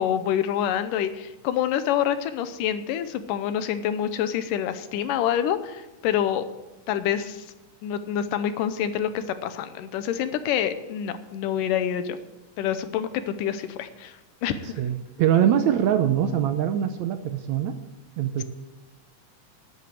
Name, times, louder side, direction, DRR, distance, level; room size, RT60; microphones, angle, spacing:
voice 1, 0.0-6.5 6.9-7.5 7.8-12.2 12.6-14.2 14.4-14.8, left 9 dB, 80° left, 11 dB, 2.4 m, -27 dB
voice 2, 14.8-17.8 18.2-18.4, right 10 dB, 75° right, 8 dB, 1.8 m, -23 dB
10.5 x 8.8 x 7.6 m, 1.1 s
omnidirectional pair, 3.8 m